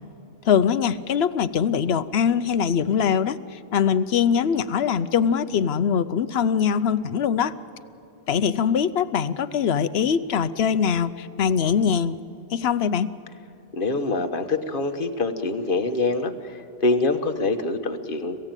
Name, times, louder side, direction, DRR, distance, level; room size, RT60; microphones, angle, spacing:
voice 1, 0.4-7.5 8.3-12.2 12.5-13.1, left 7 dB, 75° left, 13 dB, 1.0 m, -22 dB
voice 2, 13.7-18.4, left 3 dB, 55° left, 6 dB, 1.5 m, -25 dB
27.0 x 15.5 x 9.0 m, 2.9 s
omnidirectional pair, 1.1 m